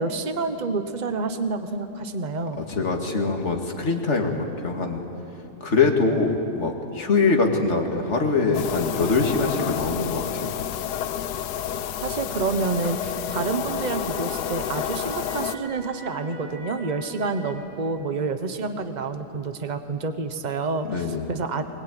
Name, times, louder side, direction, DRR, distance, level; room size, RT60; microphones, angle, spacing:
voice 1, 0.0-2.6 12.0-21.6, right 3 dB, 30° right, 8 dB, 1.2 m, -28 dB
voice 2, 2.7-5.0 5.6-10.5 20.9-21.3, left 4 dB, 45° left, 2 dB, 2.4 m, -23 dB
sound 1, 8.5-15.6, left 10 dB, 85° left, 1.3 m, -30 dB
sound 2, 11.6-17.5, right 1 dB, 85° right, 6.7 m, -43 dB
22.0 x 21.5 x 9.2 m, 2.8 s
omnidirectional pair, 1.7 m